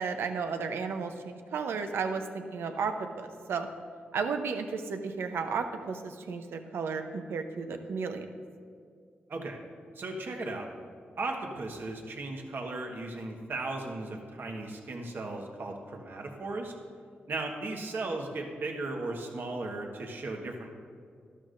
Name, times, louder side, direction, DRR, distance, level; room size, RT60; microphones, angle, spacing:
voice 1, 0.0-3.7 4.1-8.3, right 5 dB, 85° right, 6 dB, 0.7 m, -33 dB
voice 2, 9.3-9.6 9.9-10.7 11.2-16.7 17.3-20.7, right 2 dB, 65° right, 2 dB, 1.3 m, -36 dB
12.5 x 12.0 x 2.6 m, 2.2 s
cardioid pair, 65°, 4 cm